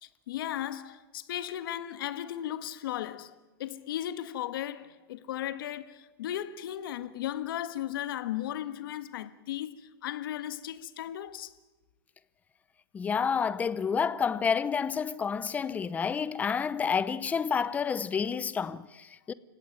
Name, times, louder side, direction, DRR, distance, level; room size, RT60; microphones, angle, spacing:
voice 1, 0.0-11.5, left 12 dB, 65° left, 1.6 m, -36 dB
voice 2, 12.9-19.3, left 6 dB, 10° left, 0.7 m, -29 dB
29.0 x 17.0 x 9.6 m
supercardioid pair, 155°, 13 cm